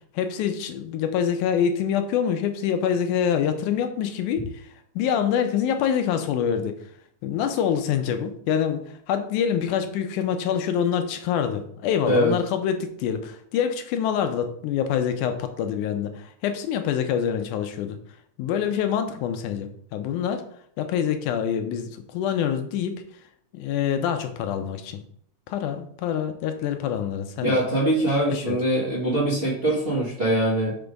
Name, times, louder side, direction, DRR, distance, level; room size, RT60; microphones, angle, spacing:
voice 1, 0.1-6.9 7.2-18.0 18.4-20.4 20.8-23.0 23.5-25.0 25.5-27.6 28.3-28.6, left 8 dB, 85° left, 7 dB, 2.1 m, -26 dB
voice 2, 27.4-30.8, right 1 dB, 30° right, -6 dB, 1.1 m, -23 dB
6.0 x 3.4 x 5.2 m, 0.65 s
omnidirectional pair, 3.5 m